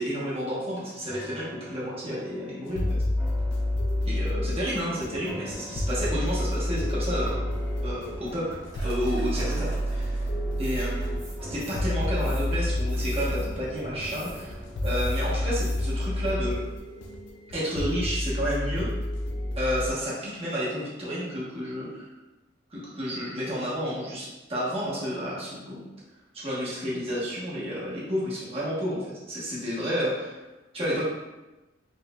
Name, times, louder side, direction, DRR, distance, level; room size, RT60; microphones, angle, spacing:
voice 1, 0.0-3.0 4.0-7.4 7.8-10.2 10.6-11.2 11.5-16.7 17.5-18.9 19.5-22.1 22.7-25.8 26.3-30.4 30.7-31.0, equal, 30° right, -8 dB, 1.1 m, -31 dB
sound 1, 1.1-16.4 16.7-16.8, equal, ahead, 1.0 m, -46 dB
sound 2, 2.7-19.9, left 1 dB, 65° left, 0.4 m, -29 dB
sound 3, 8.2-16.3, right 1 dB, 45° right, 1.4 m, -45 dB
4.2 x 2.5 x 2.3 m, 1.1 s
head